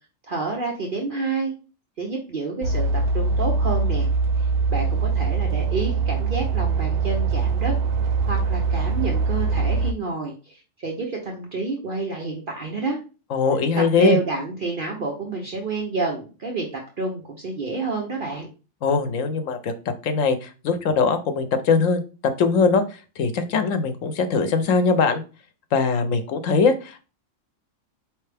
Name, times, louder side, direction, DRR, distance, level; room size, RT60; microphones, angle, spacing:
voice 1, 0.3-1.5 2.0-4.1 4.7-7.7 8.2-13.0 13.8-18.5, right 3 dB, 45° right, 0 dB, 0.9 m, -29 dB
sound 1, 2.6-9.9, right 4 dB, 85° right, 1.0 m, -22 dB
voice 2, 13.3-14.2 18.8-19.7 20.0-22.8 23.2-25.2 25.7-27.0, left 4 dB, 80° left, 8 dB, 1.1 m, -21 dB
4.5 x 3.3 x 3.3 m, 0.33 s
omnidirectional pair, 1.3 m